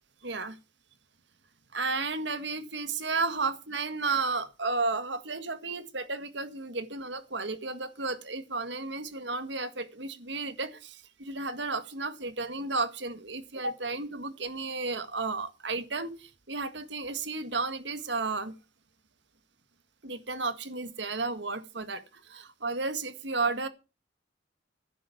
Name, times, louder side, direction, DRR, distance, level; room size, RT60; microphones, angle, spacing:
voice 1, 0.2-0.6 1.7-18.5 20.0-23.7, right 3 dB, 65° right, 1.8 m, -33 dB
15.0 x 7.7 x 7.2 m
head